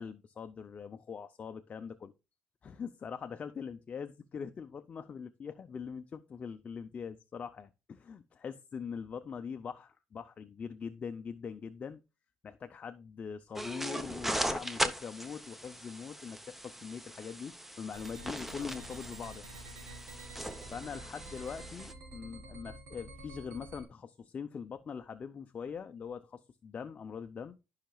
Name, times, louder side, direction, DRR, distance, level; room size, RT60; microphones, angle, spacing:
voice 1, 0.0-2.1 2.6-12.0 12.4-19.4 20.7-27.6, left 6 dB, 35° left, 0.5 m, -42 dB
sound 1, 13.6-21.9, equal, 5° right, 0.8 m, -39 dB
sound 2, 17.9-23.9, right 2 dB, 70° right, 4.0 m, -49 dB
13.5 x 5.7 x 2.3 m
cardioid pair, 135°, 4 cm